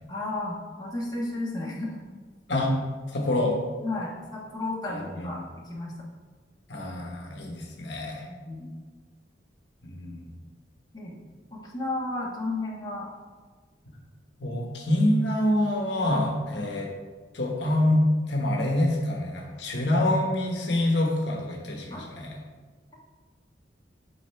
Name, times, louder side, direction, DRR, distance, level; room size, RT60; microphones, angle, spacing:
voice 1, 0.1-2.0 3.8-6.1 8.3-8.7 10.9-11.2 11.5-13.1 16.5-16.6 21.9-22.0, left 2 dB, 25° left, -5 dB, 1.4 m, -33 dB
voice 2, 3.1-3.6 4.9-5.3 6.7-8.2 9.8-10.3 14.4-16.9 17.3-22.4, left 1 dB, 75° left, 0 dB, 1.2 m, -26 dB
8.4 x 4.9 x 3.4 m, 1.5 s
head